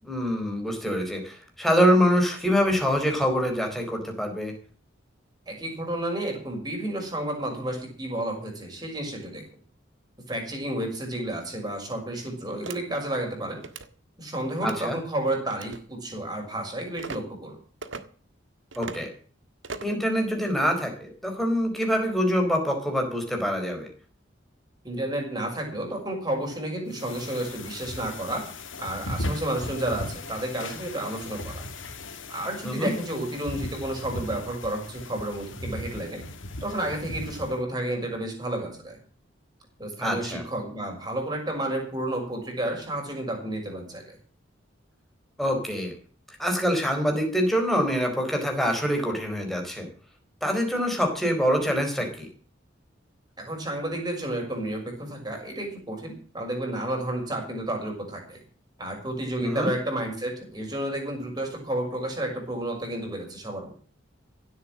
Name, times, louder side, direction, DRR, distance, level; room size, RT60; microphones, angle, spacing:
voice 1, 0.0-4.5 14.6-15.0 18.8-19.1 19.8-23.9 32.6-32.9 40.0-40.4 45.4-45.9 46.4-49.9 50.4-52.3 59.4-59.7, equal, ahead, 3 dB, 4.4 m, -25 dB
voice 2, 5.5-9.4 10.3-13.6 14.2-17.6 24.8-28.4 28.8-31.6 32.3-36.2 36.6-39.0 39.8-44.2 53.4-58.4 58.8-63.7, right 1 dB, 20° right, 1 dB, 6.2 m, -31 dB
sound 1, 12.6-12.8 13.6-13.9 14.6-14.8 15.5-15.8 17.0-17.2 17.8-18.0 18.7-19.0 19.6-20.0, right 3 dB, 75° right, 1.7 m, -38 dB
sound 2, 26.9-37.6, left 1 dB, 80° left, 2.3 m, -37 dB
16.5 x 8.3 x 7.6 m, 0.42 s
head